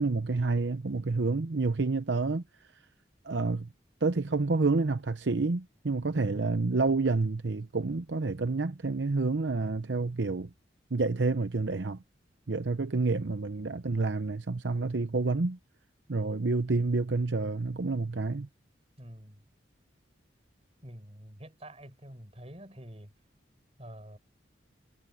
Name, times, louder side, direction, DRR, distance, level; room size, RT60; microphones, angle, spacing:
voice 1, 0.0-2.4 3.2-3.7 4.0-10.5 10.9-12.0 12.5-15.6 16.1-18.5, right 3 dB, 80° right, 0.8 m, -29 dB
voice 2, 19.0-19.5 20.8-23.1 23.8-24.2, equal, 35° right, 7.5 m, -47 dB
head